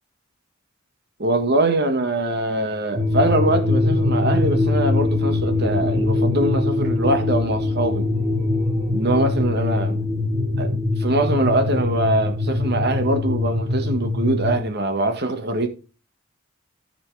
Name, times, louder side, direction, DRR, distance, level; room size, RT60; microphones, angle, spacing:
voice 1, 1.2-8.1 8.9-10.0 10.6-15.7, right 1 dB, 55° right, 1.6 m, -23 dB
sound 1, 3.0-14.6, left 2 dB, 25° right, 1.8 m, -22 dB
13.5 x 6.1 x 3.3 m
head